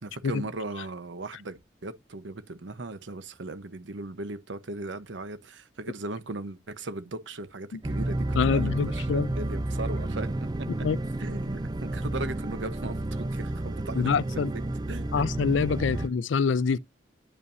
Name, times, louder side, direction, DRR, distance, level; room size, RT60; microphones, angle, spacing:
voice 1, 0.0-10.3 10.6-10.7 11.2-14.6 14.9-15.2 15.9-16.1, right 2 dB, 80° right, 1.0 m, -38 dB
sound 1, 7.8-16.1, right 1 dB, 20° right, 0.4 m, -31 dB
voice 2, 8.4-9.3 10.8-11.0 14.0-14.5 15.1-16.8, left 5 dB, 85° left, 0.4 m, -25 dB
11.0 x 5.6 x 2.6 m
head